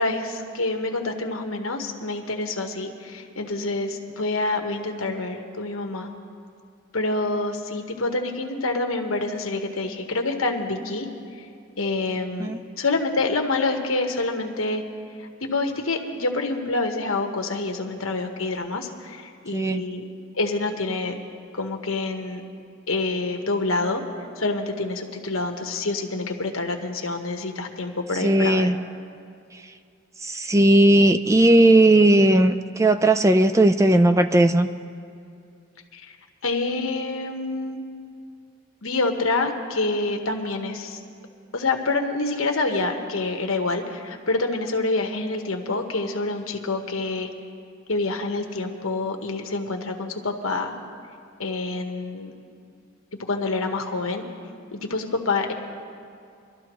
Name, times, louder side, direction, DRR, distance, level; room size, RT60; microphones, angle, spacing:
voice 1, 0.0-6.1 6.9-11.1 11.8-12.5 12.8-14.8 15.2-20.0 20.3-21.1 21.5-22.4 22.9-24.0 24.4-28.7 35.9-36.1 36.4-37.8 38.8-41.0 41.5-47.3 47.9-50.7 51.4-52.3 53.3-54.3 54.7-55.5, left 3 dB, 70° left, 4 dB, 1.3 m, -27 dB
voice 2, 19.5-19.8 28.2-28.8 30.2-34.7, right 1 dB, 15° right, 8 dB, 0.3 m, -17 dB
24.5 x 13.0 x 3.1 m, 2.4 s
head